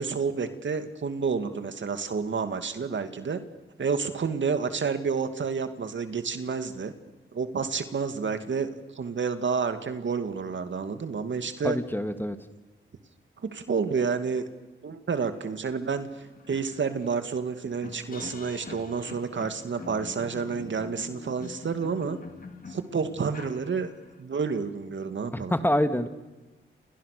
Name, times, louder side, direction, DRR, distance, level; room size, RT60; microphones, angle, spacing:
voice 1, 0.0-3.4 3.8-6.9 7.3-11.8 13.4-14.4 14.8-22.2 22.7-23.9 24.2-25.5, right 5 dB, 60° right, 9 dB, 2.4 m, -30 dB
voice 2, 11.6-12.4 25.3-26.1, equal, 10° left, 9 dB, 2.0 m, -26 dB
sound 1, 15.7-15.8 16.1-24.2, left 3 dB, 40° left, 3.3 m, -44 dB
29.5 x 28.5 x 6.8 m, 1.2 s
cardioid pair, 70°, 21 cm